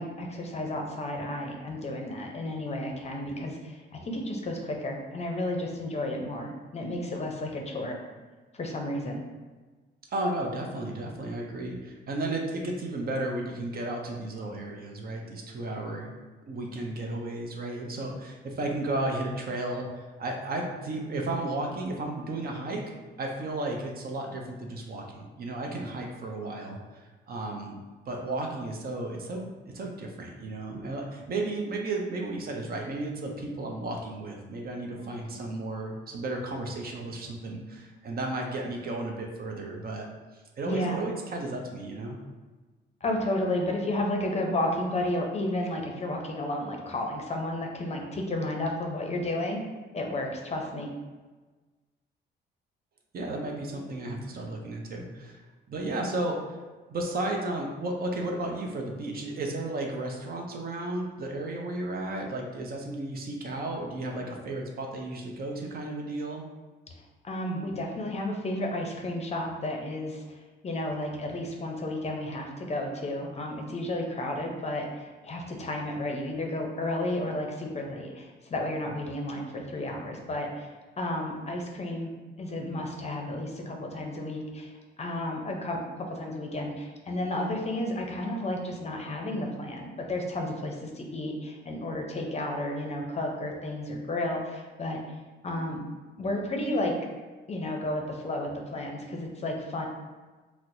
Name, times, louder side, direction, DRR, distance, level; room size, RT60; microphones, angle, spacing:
voice 1, 0.0-8.0 8.5-9.2 35.0-35.3 40.6-41.0 43.0-49.6 49.9-50.9 67.2-82.1 82.4-84.7 85.0-95.2 95.4-95.8 96.2-96.9 97.5-99.9, left 1 dB, 35° left, 1 dB, 0.6 m, -32 dB
voice 2, 10.1-16.1 16.5-22.8 23.2-27.8 28.1-29.5 29.7-40.1 40.6-42.2 53.1-55.4 55.7-56.6 56.9-66.4, right 2 dB, 50° right, 1 dB, 0.6 m, -33 dB
4.3 x 2.0 x 2.6 m, 1.3 s
cardioid pair, 90°, 20 cm